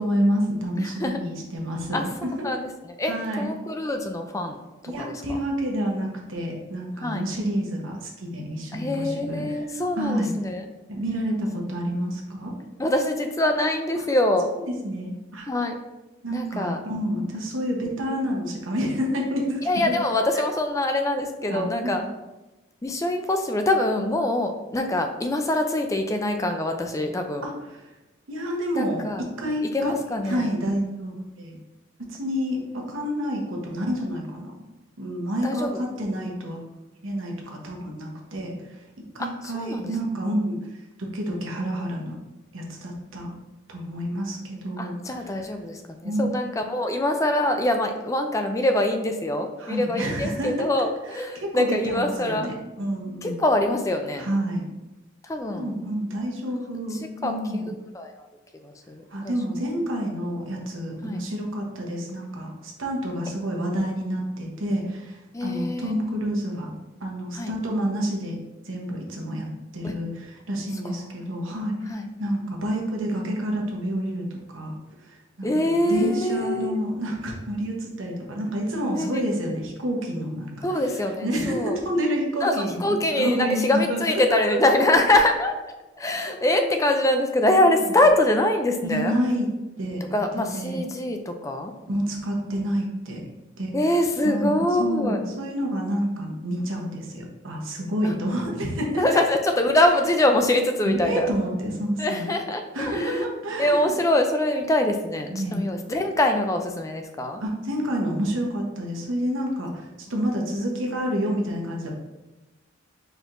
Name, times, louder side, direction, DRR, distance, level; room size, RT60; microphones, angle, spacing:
voice 1, 0.0-2.5 3.1-3.5 4.9-9.6 10.0-10.3 10.9-12.5 14.7-15.5 16.2-20.0 20.3-20.4 21.5-22.1 27.4-27.8 28.3-29.9 30.2-31.5 32.0-34.5 35.0-36.6 37.0-38.8 39.1-40.6 41.0-42.2 42.5-43.3 43.7-45.3 46.0-46.4 49.6-50.7 51.1-53.4 54.2-54.6 55.5-57.7 59.1-66.7 67.0-68.4 68.6-69.5 69.7-71.7 72.2-74.7 75.0-75.5 75.8-80.8 81.2-84.6 86.3-86.9 87.6-87.8 88.8-89.5 89.8-90.2 90.5-90.8 91.9-93.2 93.6-93.7 94.2-99.2 100.9-102.3 102.7-104.0 105.3-105.6 107.4-111.9, equal, 80° right, 0 dB, 1.0 m, -28 dB
voice 2, 0.8-1.2 1.9-2.1 2.4-2.7 3.0-4.6 4.8-5.4 7.0-7.2 8.7-10.6 12.8-14.5 15.5-15.8 16.3-16.8 19.7-22.0 22.8-27.5 28.7-29.2 29.7-30.5 35.4-35.8 39.2-39.9 44.8-52.5 53.2-54.3 55.2-55.7 56.9-57.3 57.9-58.3 58.6-59.3 61.0-61.2 65.3-66.2 67.3-67.5 69.8-70.0 71.9-72.1 75.4-76.8 78.9-79.2 80.6-81.8 82.4-89.1 90.1-91.7 93.7-95.2 98.0-98.2 99.0-101.3 102.0-103.2 103.6-107.4, left 1 dB, 15° left, 5 dB, 0.4 m, -24 dB
4.5 x 4.4 x 2.6 m, 1.1 s
head